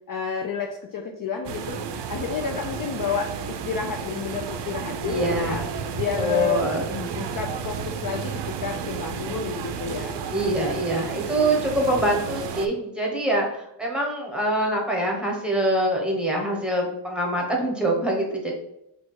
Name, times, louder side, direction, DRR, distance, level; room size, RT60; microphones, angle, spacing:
voice 1, 0.1-1.8 2.1-5.6 5.9-6.6 6.9-10.2, left 6 dB, 50° left, 3 dB, 0.4 m, -30 dB
sound 1, 1.4-12.7, right 6 dB, 65° right, 0.5 m, -32 dB
voice 2, 5.0-5.7 6.2-7.0 10.3-18.5, right 1 dB, ahead, -1 dB, 0.9 m, -25 dB
4.2 x 2.4 x 4.6 m, 0.81 s
wide cardioid pair, 140°, 46 cm